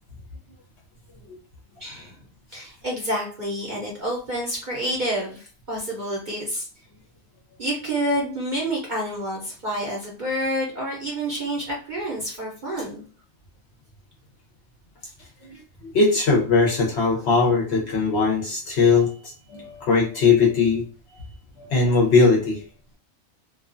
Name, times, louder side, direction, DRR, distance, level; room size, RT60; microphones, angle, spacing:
voice 1, 1.8-2.2 2.5-6.7 7.6-13.0, right 1 dB, 50° right, -3 dB, 0.6 m, -28 dB
voice 2, 15.9-19.1 19.5-20.8 21.6-22.6, left 4 dB, 60° left, -1 dB, 0.7 m, -19 dB
2.4 x 2.2 x 2.4 m, 0.39 s
omnidirectional pair, 1.5 m